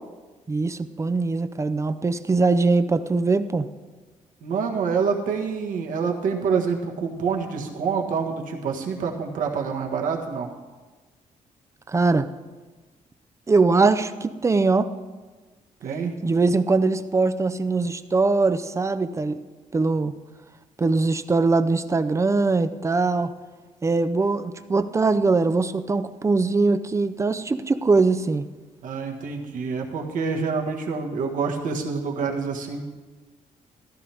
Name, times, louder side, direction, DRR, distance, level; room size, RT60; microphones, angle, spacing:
voice 1, 0.5-3.7 11.9-12.3 13.5-14.9 16.2-19.4 19.7-20.1 20.8-23.3 23.8-28.4, right 3 dB, 20° right, 11 dB, 0.6 m, -21 dB
voice 2, 4.4-10.5 15.8-16.2 28.8-32.8, right 5 dB, 75° right, 2 dB, 1.6 m, -27 dB
14.5 x 12.5 x 3.5 m, 1.3 s
cardioid pair, 105°, 14 cm